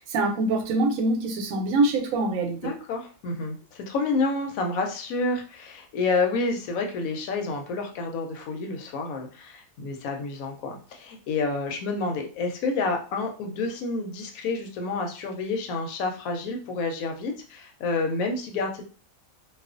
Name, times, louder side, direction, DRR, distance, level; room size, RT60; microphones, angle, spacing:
voice 1, 0.0-2.6, right 2 dB, 90° right, 4 dB, 1.0 m, -24 dB
voice 2, 2.6-18.8, left 3 dB, 85° left, 3 dB, 1.0 m, -29 dB
2.4 x 2.3 x 2.4 m, 0.38 s
omnidirectional pair, 1.4 m